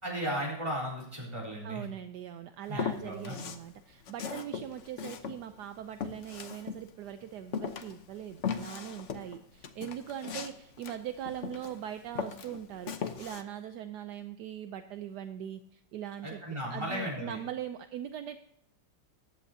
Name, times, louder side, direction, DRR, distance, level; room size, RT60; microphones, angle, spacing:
voice 1, 0.0-1.8 2.7-3.4 16.2-17.4, equal, 15° right, -3 dB, 4.0 m, -35 dB
voice 2, 1.6-18.4, right 10 dB, 75° right, 9 dB, 1.1 m, -41 dB
Walk footsteps, 2.7-3.7 4.0-7.1 7.5-11.8 12.1-13.4, left 7 dB, 50° left, 1.0 m, -38 dB
15.0 x 11.0 x 2.7 m, 0.74 s
omnidirectional pair, 1.9 m